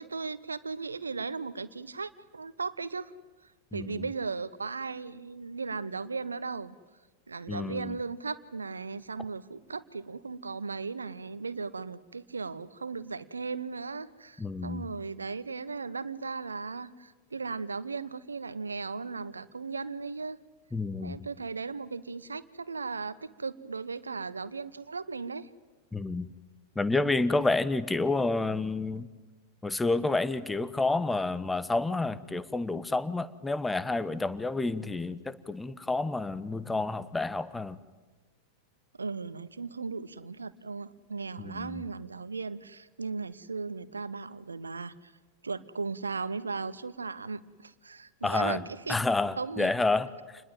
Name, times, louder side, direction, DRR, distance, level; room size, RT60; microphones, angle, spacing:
voice 1, 0.0-3.1 3.7-6.8 7.3-20.4 21.0-25.5 39.0-45.1 45.4-48.9 49.4-49.7, right 4 dB, 75° right, 17 dB, 1.0 m, -37 dB
voice 2, 3.7-4.0 7.5-7.9 14.4-14.8 20.7-21.2 25.9-26.3 26.7-29.1 29.6-37.8 41.4-41.8 48.2-48.6 48.9-50.1, left 3 dB, 10° left, 15 dB, 1.1 m, -29 dB
28.0 x 20.5 x 9.2 m, 1.3 s
figure-of-eight pair, 90°, 0 cm